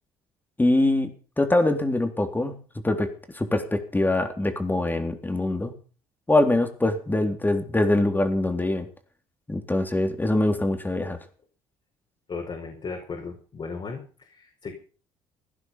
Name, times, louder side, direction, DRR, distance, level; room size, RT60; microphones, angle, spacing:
voice 1, 0.6-1.1 1.4-2.5 2.8-5.7 6.3-8.9 9.5-11.2, left 2 dB, 15° left, 6 dB, 3.7 m, -23 dB
voice 2, 12.3-14.7, left 4 dB, 40° left, 0 dB, 5.4 m, -36 dB
16.5 x 11.0 x 5.8 m, 0.38 s
hypercardioid pair, 65°, 13 cm